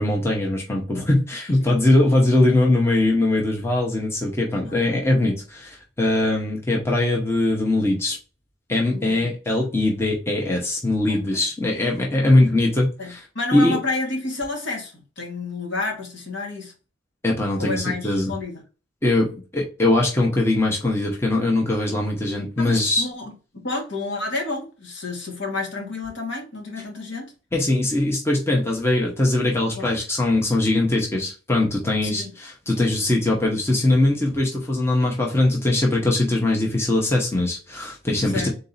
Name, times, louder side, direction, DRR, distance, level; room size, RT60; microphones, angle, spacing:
voice 1, 0.0-8.2 8.7-13.2 13.5-13.8 17.2-18.3 19.0-23.1 27.5-38.5, left 2 dB, 15° left, 0.8 m, -21 dB
voice 2, 4.7-5.2 8.9-9.6 11.1-11.5 13.0-16.7 17.6-18.6 22.6-27.3 29.8-29.9 32.0-32.3 38.2-38.5, left 3 dB, 70° left, 1.6 m, -30 dB
3.9 x 2.7 x 3.9 m
head